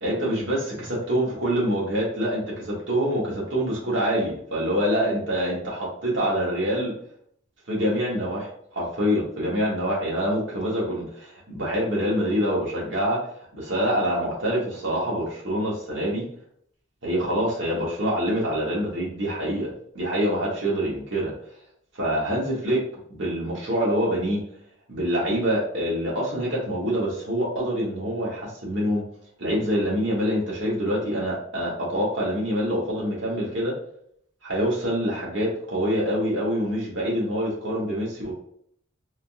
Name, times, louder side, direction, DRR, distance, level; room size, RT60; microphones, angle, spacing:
voice 1, 0.0-6.9 7.7-13.2 13.5-16.2 17.0-21.3 22.0-22.8 23.1-24.4 24.9-29.0 29.4-33.7 34.4-38.3, equal, 65° right, -4 dB, 1.3 m, -25 dB
3.7 x 2.4 x 2.6 m, 0.67 s
head